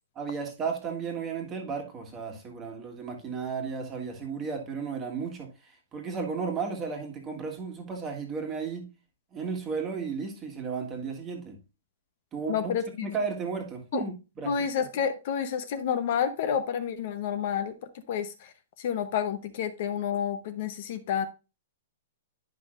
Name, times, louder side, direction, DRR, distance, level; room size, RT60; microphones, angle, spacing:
voice 1, 0.2-8.9 9.3-11.6 12.3-12.7 13.0-14.6, right 5 dB, 15° right, 1.6 m, -34 dB
voice 2, 12.5-13.1 13.9-14.0 14.5-17.7 18.1-18.3 18.8-21.3, left 8 dB, 45° left, 0.8 m, -29 dB
10.5 x 5.4 x 2.5 m
hypercardioid pair, 170°, 0 cm